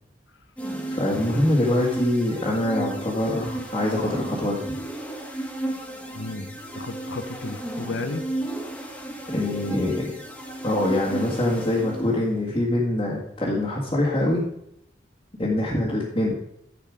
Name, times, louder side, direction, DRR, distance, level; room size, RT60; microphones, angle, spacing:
sound 1, 0.6-12.3, right 1 dB, 10° left, 1.5 m, -34 dB
voice 1, 0.9-4.6 9.3-10.1 10.6-14.5 15.4-16.3, left 1 dB, 25° left, -6 dB, 1.9 m, -24 dB
voice 2, 6.1-8.2 15.4-15.6, left 2 dB, 75° left, 9 dB, 0.9 m, -33 dB
11.0 x 8.0 x 4.9 m, 0.78 s
head